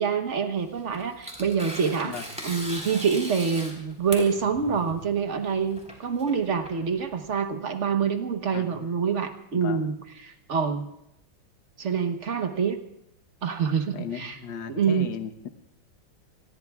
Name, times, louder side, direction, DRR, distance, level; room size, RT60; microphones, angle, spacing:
voice 1, 0.0-2.1 2.4-10.0 10.2-10.9 11.8-12.8 13.4-14.3 14.7-15.1, right 6 dB, 45° right, 7 dB, 1.2 m, -26 dB
Tearing, 0.6-7.4, equal, 5° right, 3.8 m, -39 dB
voice 2, 8.5-8.9 9.5-9.9 13.9-15.5, left 7 dB, 65° left, 8 dB, 1.7 m, -36 dB
28.0 x 21.5 x 2.4 m, 0.81 s
omnidirectional pair, 2.2 m